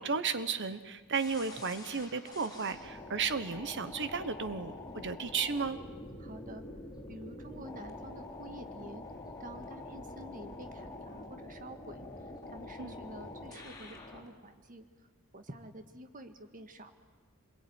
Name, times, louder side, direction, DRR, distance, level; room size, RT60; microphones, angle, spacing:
voice 1, 0.0-5.8 12.8-13.0, right 5 dB, 55° right, 12 dB, 1.1 m, -34 dB
sound 1, 1.1-14.3, left 2 dB, 20° left, 3.9 m, -46 dB
voice 2, 6.2-6.6 7.1-9.0 9.4-14.9 15.3-16.9, right 1 dB, 40° right, 8 dB, 1.8 m, -49 dB
27.5 x 22.0 x 9.5 m, 1.3 s
head